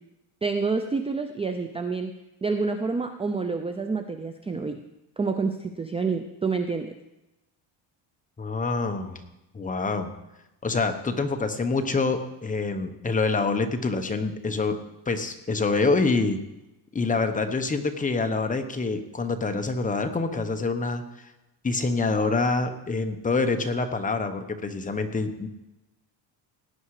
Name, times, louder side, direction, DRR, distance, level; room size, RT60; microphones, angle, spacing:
voice 1, 0.4-2.1 2.4-4.8 5.2-6.9, right 4 dB, 15° right, 6 dB, 0.5 m, -28 dB
voice 2, 8.4-9.2 9.5-10.1 10.6-16.4 16.9-21.0 21.6-25.5, left 3 dB, 15° left, 6 dB, 1.0 m, -26 dB
17.5 x 9.7 x 4.9 m, 0.94 s
cardioid pair, 150°, 46 cm